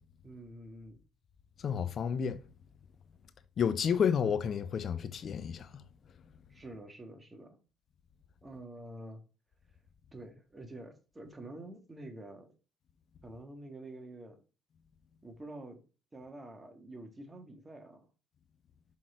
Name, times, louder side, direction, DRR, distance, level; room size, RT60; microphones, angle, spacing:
voice 1, 0.2-1.0 6.5-7.6 8.4-9.2 10.1-12.5 13.2-14.4 15.2-15.8 16.1-18.1, right 1 dB, 20° right, 1.6 m, -47 dB
voice 2, 1.6-2.4 3.6-5.8, left 7 dB, 50° left, 0.7 m, -31 dB
6.4 x 3.8 x 4.4 m
supercardioid pair, 85°, 0 cm